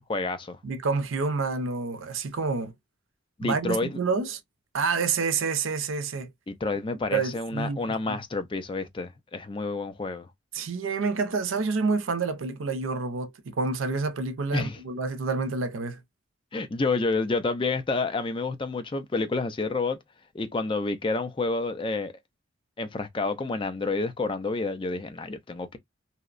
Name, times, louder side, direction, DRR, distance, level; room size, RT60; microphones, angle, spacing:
voice 1, 0.0-0.6 3.4-4.0 6.5-10.3 14.5-14.8 16.5-20.0 20.3-22.1 22.8-25.8, left 3 dB, 25° left, 0.4 m, -29 dB
voice 2, 0.6-2.7 3.4-4.4 4.7-6.3 7.1-7.8 8.1-8.2 10.5-16.0, right 4 dB, 90° right, 0.5 m, -28 dB
2.7 x 2.0 x 2.4 m
head